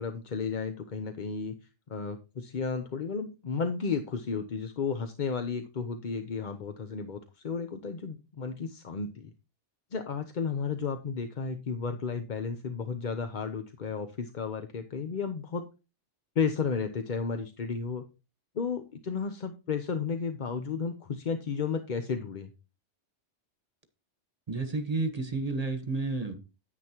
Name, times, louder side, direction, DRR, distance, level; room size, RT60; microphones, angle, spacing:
voice 1, 0.0-1.5 1.9-9.3 9.9-15.6 16.4-18.0 18.5-22.5, left 5 dB, 45° left, 0.8 m, -33 dB
voice 2, 24.5-26.3, right 3 dB, 35° right, 1.3 m, -31 dB
9.9 x 9.3 x 2.9 m
omnidirectional pair, 1.2 m